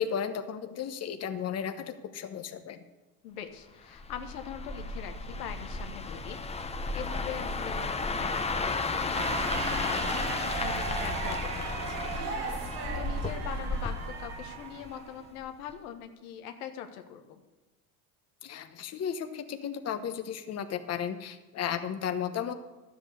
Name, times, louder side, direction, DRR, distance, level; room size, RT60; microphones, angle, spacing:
voice 1, 0.0-2.8 18.4-22.5, left 8 dB, 35° left, 8 dB, 1.1 m, -34 dB
voice 2, 3.2-6.4 6.9-17.4, left 9 dB, 85° left, 6 dB, 1.3 m, -42 dB
sound 1, 3.9-15.1 15.4-15.7, left 3 dB, 15° left, 0.9 m, -33 dB
sound 2, 9.1-15.3, right 6 dB, 65° right, 2.5 m, -37 dB
12.0 x 8.1 x 6.7 m, 1.1 s
supercardioid pair, 90°, 43 cm